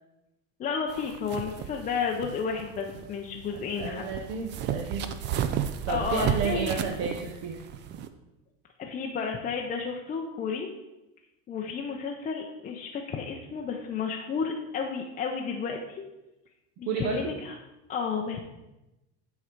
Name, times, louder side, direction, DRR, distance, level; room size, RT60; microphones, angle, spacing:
voice 1, 0.6-4.1 5.9-6.8 8.8-10.7 11.5-16.0 16.8-17.6 17.9-18.4, left 6 dB, 25° left, 1 dB, 0.5 m, -32 dB
sound 1, 0.9-8.1, right 8 dB, 35° right, 0.4 m, -33 dB
voice 2, 3.5-5.1 5.9-7.7 16.9-17.3, right 5 dB, 50° right, 2 dB, 0.8 m, -32 dB
9.4 x 3.8 x 4.4 m, 0.98 s
cardioid pair, 145°, 34 cm